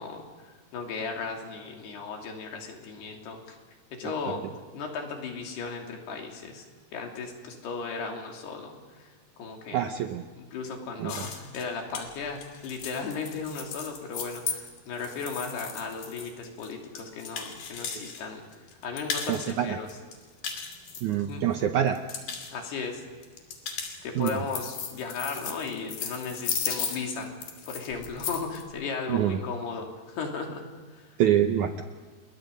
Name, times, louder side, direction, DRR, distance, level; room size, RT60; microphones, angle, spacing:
voice 1, 0.0-3.6 3.9-4.4 4.7-6.7 6.9-9.1 9.4-9.9 10.4-18.4 18.8-20.0 21.1-21.5 22.5-23.0 24.0-27.3 27.7-30.7 30.9-31.2, left 5 dB, 85° left, 2 dB, 4.9 m, -36 dB
voice 2, 9.7-10.2 11.0-11.1 19.3-19.8 21.0-22.0 24.2-24.3 29.1-29.4 31.2-31.8, right 10 dB, 75° right, 6 dB, 1.8 m, -25 dB
sound 1, 11.1-18.2 18.5-19.5 19.9-21.5 21.9-22.5 23.2-28.6, left 6 dB, 65° left, 4.4 m, -36 dB
30.0 x 21.5 x 5.3 m, 1.5 s
omnidirectional pair, 4.6 m